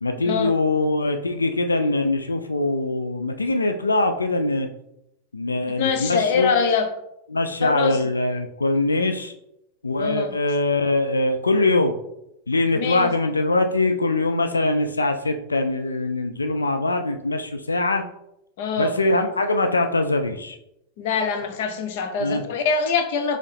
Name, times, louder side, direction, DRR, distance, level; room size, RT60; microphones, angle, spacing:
voice 1, 0.0-4.7 5.3-6.5 7.3-9.3 9.8-11.9 12.5-18.0 18.8-20.6 22.2-22.4, left 2 dB, 90° left, 6 dB, 0.3 m, -22 dB
voice 2, 5.8-6.9 7.6-8.0 10.0-10.3 12.8-13.1 18.6-18.9 21.0-23.4, left 5 dB, 60° left, 7 dB, 0.7 m, -23 dB
4.5 x 3.0 x 3.4 m, 0.83 s
figure-of-eight pair, 95°, 0 cm